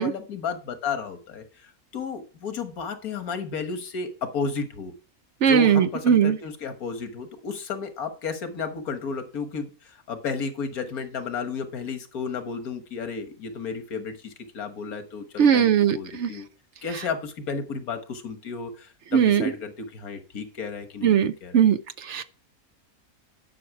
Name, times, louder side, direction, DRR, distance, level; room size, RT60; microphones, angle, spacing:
voice 1, 0.0-4.9 5.4-16.5 16.8-21.2 21.4-21.6, left 5 dB, 80° left, 1.7 m, -33 dB
voice 2, 5.4-6.4 15.4-16.3 19.1-19.4 21.0-22.2, right 8 dB, 65° right, 0.8 m, -20 dB
11.0 x 5.9 x 4.7 m
omnidirectional pair, 1.5 m